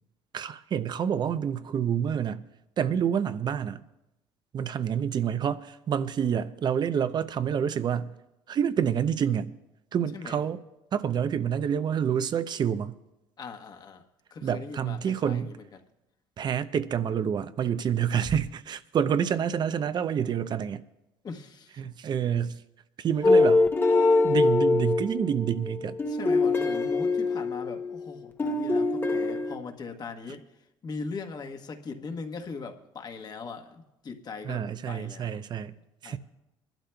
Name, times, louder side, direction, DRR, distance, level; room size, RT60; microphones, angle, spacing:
voice 1, 0.3-2.5 2.8-3.8 4.5-8.1 8.5-9.5 9.9-10.6 10.9-13.0 14.4-15.6 16.4-20.8 21.8-22.6 23.0-23.7 24.2-26.0 34.4-35.7 36.0-36.2, right 8 dB, 45° right, 0.6 m, -28 dB
voice 2, 13.4-14.0 14.3-15.8 21.2-21.8 26.1-30.4 30.8-35.4 36.0-36.2, left 4 dB, 40° left, 1.2 m, -40 dB
sound 1, 23.2-28.1 28.4-29.6, left 3 dB, 20° left, 0.8 m, -23 dB
25.0 x 12.0 x 2.3 m
supercardioid pair, 90°, 11 cm